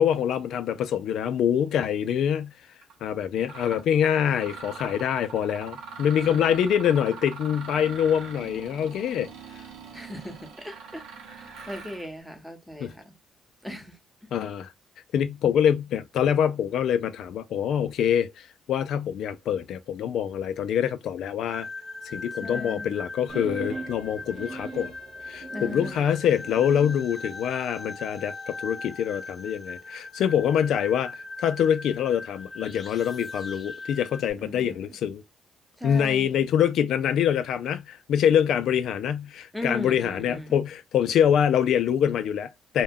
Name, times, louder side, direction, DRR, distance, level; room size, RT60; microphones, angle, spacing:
voice 1, 0.0-2.5 3.0-9.3 12.8-12.9 14.3-14.7 15.1-21.7 22.1-24.9 25.3-35.2 35.8-42.8, left 9 dB, 75° left, 0.3 m, -25 dB
Mechanisms, 2.8-2.9 3.4-3.8 4.3-12.1, right 5 dB, 90° right, 0.8 m, -42 dB
voice 2, 6.2-6.9 9.9-13.2 13.6-14.0 22.4-23.1 25.5-26.2 34.4-35.0 35.8-36.5 39.5-40.6, left 1 dB, ahead, 0.8 m, -38 dB
sound 1, 21.5-34.3, left 3 dB, 35° left, 0.6 m, -39 dB
sound 2, 23.3-27.0, right 3 dB, 55° right, 0.4 m, -39 dB
2.2 x 2.1 x 3.4 m
cardioid pair, 90°, 0 cm